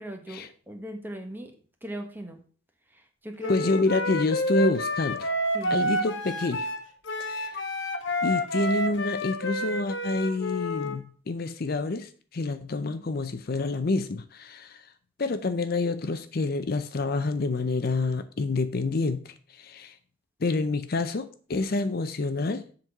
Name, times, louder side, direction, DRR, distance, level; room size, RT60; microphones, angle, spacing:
voice 1, 0.0-1.5 1.8-2.4 2.9-3.7 5.5-5.9 12.9-13.1, right 1 dB, 10° right, 4 dB, 1.2 m, -39 dB
Wind instrument woodwind instrument, 3.4-11.0, equal, 65° left, 1.1 m, -29 dB
voice 2, 3.5-5.3 5.7-6.7 7.2-7.6 8.2-14.9 15.2-20.0 20.4-22.7, left 3 dB, 50° left, 10 dB, 0.5 m, -28 dB
7.4 x 4.0 x 6.6 m, 0.43 s
head